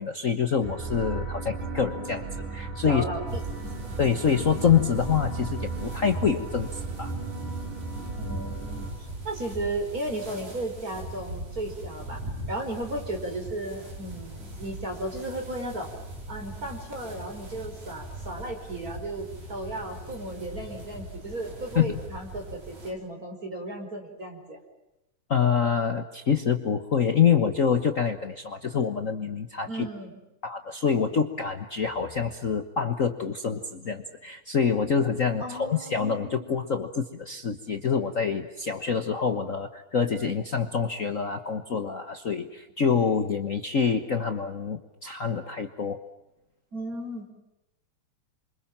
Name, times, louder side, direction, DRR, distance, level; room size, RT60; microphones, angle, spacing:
voice 1, 0.0-3.0 4.0-7.1 21.7-22.0 25.3-29.9 30.4-46.0, left 6 dB, 65° left, 7 dB, 0.7 m, -26 dB
sound 1, 0.6-8.9, right 4 dB, 75° right, 7.0 m, -36 dB
voice 2, 2.8-3.7 8.2-15.9 16.3-24.6 29.7-30.2 35.4-36.6 46.7-47.3, right 1 dB, 25° right, 4 dB, 5.2 m, -35 dB
sound 2, 3.3-22.9, right 1 dB, 60° right, 6.5 m, -40 dB
28.5 x 26.0 x 7.4 m, 0.94 s
omnidirectional pair, 3.5 m